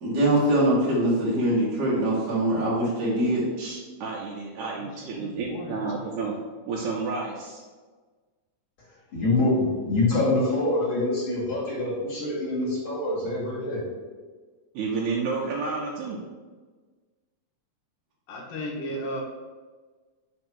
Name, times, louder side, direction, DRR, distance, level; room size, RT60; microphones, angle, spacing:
voice 1, 0.0-3.4, right 1 dB, 50° right, -6 dB, 1.1 m, -23 dB
voice 2, 3.6-6.3 6.7-7.6 14.8-16.2, right 4 dB, 75° right, -2 dB, 2.1 m, -31 dB
voice 3, 4.7-6.3 18.3-19.2, equal, 75° left, -1 dB, 2.7 m, -36 dB
voice 4, 9.1-13.8, left 2 dB, 40° left, -8 dB, 2.7 m, -25 dB
6.3 x 3.5 x 6.0 m, 1.4 s
omnidirectional pair, 3.8 m